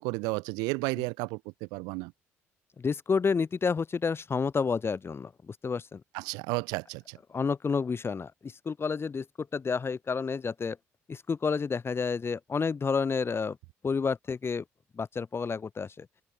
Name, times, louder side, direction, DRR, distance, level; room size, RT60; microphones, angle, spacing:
voice 1, 0.0-1.4 1.7-2.1 6.1-7.2, right 28 dB, 80° right, 4.7 m, -32 dB
voice 2, 2.8-6.0 7.3-10.8 11.1-13.6 13.8-14.6 14.9-16.1, left 5 dB, 35° left, 7.2 m, -30 dB
open air
hypercardioid pair, 55°, 7 cm